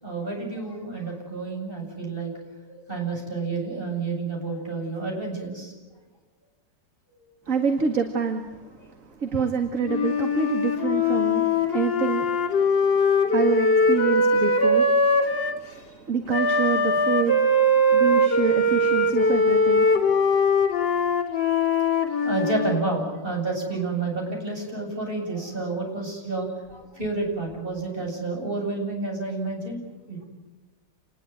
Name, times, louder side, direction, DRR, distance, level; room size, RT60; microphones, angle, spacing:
voice 1, 0.0-2.3 2.7-5.7 9.3-9.4 22.2-29.8 30.1-30.2, right 3 dB, 30° right, 0 dB, 8.3 m, -30 dB
voice 2, 7.5-8.5 9.2-11.5 11.7-12.2 13.3-14.9 15.7-17.4 17.9-19.9, right 5 dB, 45° right, 4 dB, 2.3 m, -26 dB
Wind instrument woodwind instrument, 9.8-15.6 16.3-22.8, left 1 dB, 90° left, 3.8 m, -21 dB
28.5 x 21.0 x 9.4 m, 1.1 s
omnidirectional pair, 1.9 m